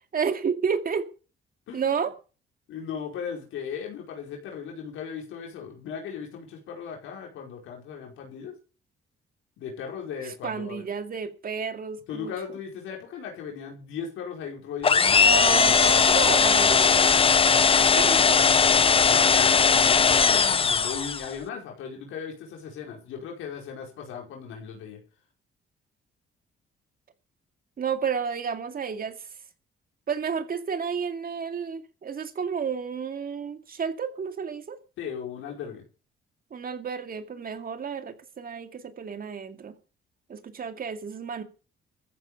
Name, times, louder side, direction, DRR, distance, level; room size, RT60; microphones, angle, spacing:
voice 1, 0.1-1.1 1.7-2.1 10.2-12.3 15.2-17.2 17.5-18.6 27.8-29.3 30.1-34.8 36.5-39.8 40.3-41.4, right 6 dB, 45° right, 2.3 m, -31 dB
voice 2, 2.7-8.5 9.6-10.8 12.1-15.1 19.1-25.0 35.0-35.8, left 7 dB, 85° left, 5.1 m, -37 dB
sound 1, 14.8-21.3, left 5 dB, 30° left, 0.6 m, -19 dB
14.5 x 9.1 x 7.1 m
cardioid pair, 90°, 20 cm